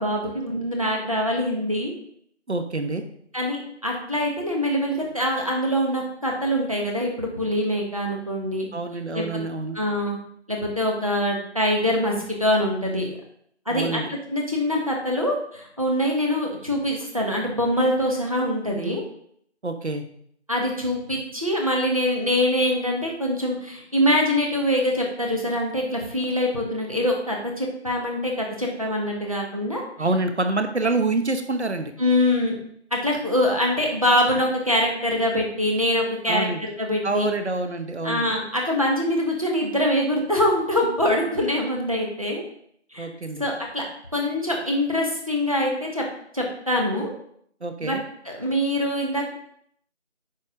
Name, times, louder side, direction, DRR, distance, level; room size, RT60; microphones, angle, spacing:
voice 1, 0.0-1.9 3.3-8.7 9.1-9.4 9.7-10.2 10.5-12.1 12.4-13.2 13.7-14.0 14.3-19.0 20.5-29.8 32.0-32.5 32.9-37.3 38.0-42.4 42.9-43.1 43.4-43.8 44.1-46.0 46.3-47.1 47.8-48.0 48.2-49.3, left 1 dB, 30° right, -1 dB, 1.3 m, -24 dB
voice 2, 2.5-3.0 8.7-9.8 13.7-14.1 19.6-20.0 30.0-31.9 36.3-36.6 37.0-38.3 43.0-43.4 47.6-48.0, right 2 dB, 70° right, 7 dB, 1.1 m, -26 dB
9.5 x 4.8 x 3.6 m, 0.68 s
figure-of-eight pair, 180°, 35 cm